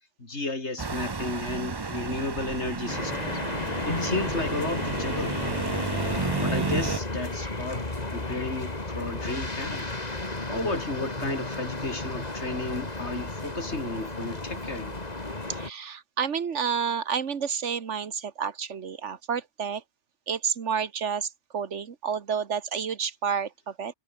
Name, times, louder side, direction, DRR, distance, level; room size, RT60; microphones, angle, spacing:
voice 1, 0.2-3.4 3.8-5.4 5.9-9.9 10.5-15.0, left 2 dB, 75° left, 4.0 m, -33 dB
sound 1, 0.8-7.0, right 4 dB, 25° right, 0.7 m, -32 dB
sound 2, 2.9-15.7, left 2 dB, 35° left, 2.9 m, -33 dB
voice 2, 15.5-19.8 20.3-23.9, right 6 dB, 85° right, 1.6 m, -30 dB
omnidirectional pair, 1.2 m